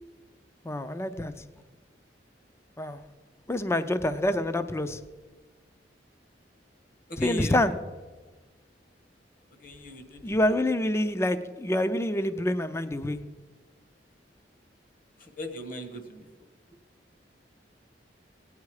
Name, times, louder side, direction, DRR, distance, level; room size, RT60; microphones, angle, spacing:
voice 1, 0.6-1.3 2.8-3.0 3.5-5.0 7.2-7.7 10.2-13.2, left 1 dB, 15° left, 11 dB, 0.5 m, -27 dB
voice 2, 7.1-7.6 9.6-10.6 15.2-16.3, left 1 dB, 55° left, 6 dB, 1.5 m, -38 dB
17.0 x 9.5 x 4.8 m, 1.3 s
head